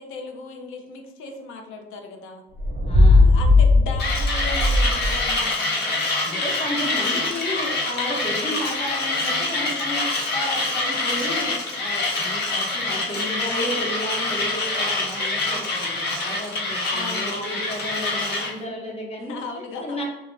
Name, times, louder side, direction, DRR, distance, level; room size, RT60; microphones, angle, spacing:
voice 1, 0.0-2.4 3.2-6.0 16.9-18.3 19.2-20.0, left 3 dB, 85° left, 3 dB, 0.5 m, -37 dB
sound 1, 2.5-5.4, left 2 dB, 40° right, 0.6 m, -17 dB
voice 2, 2.8-3.3 6.2-20.0, left 1 dB, 30° left, -2 dB, 1.0 m, -33 dB
Mechanisms, 4.0-18.5, left 2 dB, 55° left, 0.9 m, -25 dB
2.4 x 2.1 x 3.2 m, 1.0 s
cardioid pair, 90°, 20 cm